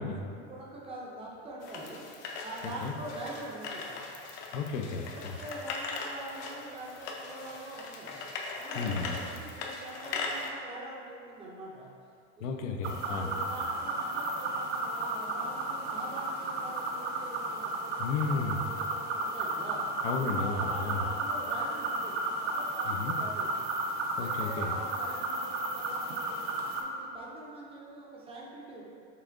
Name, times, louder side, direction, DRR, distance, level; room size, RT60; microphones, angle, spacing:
voice 1, 0.0-2.1 2.4-4.0 4.5-4.8 5.4-8.2 8.6-11.9 12.4-12.5 13.0-19.9 20.3-23.5 24.2-26.4 26.8-28.8, right 1 dB, 15° right, -4 dB, 0.5 m, -44 dB
sound 1, 1.6-10.5, left 4 dB, 45° left, 0.6 m, -39 dB
voice 2, 4.5-5.4 8.7-9.2 12.4-13.3 18.0-18.6 20.0-21.1 22.8-23.1 24.2-24.8, left 4 dB, 90° left, 3 dB, 0.6 m, -33 dB
sound 2, 12.8-26.8, right 2 dB, 80° right, 0.7 m, -33 dB
5.6 x 3.6 x 2.5 m, 2.4 s
supercardioid pair, 145°, 36 cm